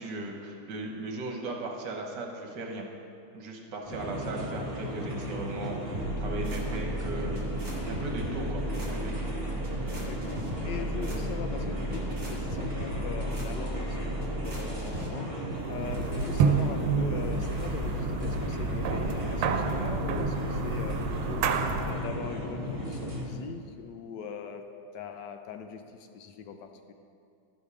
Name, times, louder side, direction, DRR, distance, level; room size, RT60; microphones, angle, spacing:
voice 1, 0.0-2.8 3.3-7.4 7.9-9.1, right 2 dB, 60° right, 1 dB, 1.6 m, -37 dB
sound 1, 3.9-23.3, equal, 20° right, 1.3 m, -35 dB
sound 2, 5.9-15.1, right 1 dB, 40° right, 2.0 m, -35 dB
voice 2, 10.1-15.3 15.6-21.4 21.8-24.6 24.9-26.9, left 6 dB, 70° left, 6 dB, 1.1 m, -41 dB
sound 3, 15.6-22.1, right 5 dB, 90° right, 1.5 m, -29 dB
12.5 x 5.3 x 4.9 m, 2.4 s
omnidirectional pair, 2.3 m